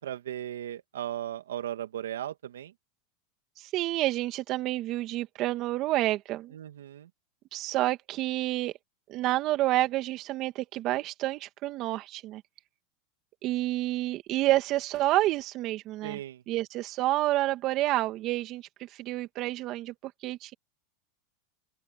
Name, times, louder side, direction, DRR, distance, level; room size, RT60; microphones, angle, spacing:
voice 1, 0.0-2.7 6.5-7.1 16.0-16.4, right 11 dB, 85° right, 2.4 m, -37 dB
voice 2, 3.6-6.5 7.5-8.7 9.1-12.4 13.4-16.2 16.5-20.5, right 16 dB, 45° right, 2.5 m, -29 dB
open air
hypercardioid pair, 110°, 0 cm